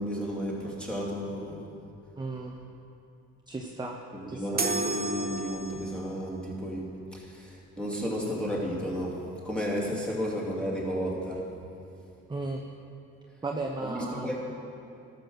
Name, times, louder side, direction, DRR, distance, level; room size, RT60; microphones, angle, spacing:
voice 1, 0.0-1.6 4.1-9.2 9.4-11.5 13.8-14.4, equal, 5° left, -4 dB, 2.6 m, -33 dB
voice 2, 2.2-2.5 3.5-4.0 4.3-4.7 12.3-12.6 13.4-14.4, right 2 dB, 15° right, 2 dB, 0.8 m, -35 dB
sound 1, 4.6-6.1, right 2 dB, 30° right, 1.1 m, -31 dB
13.0 x 6.7 x 6.3 m, 2.7 s
cardioid pair, 90°, 30 cm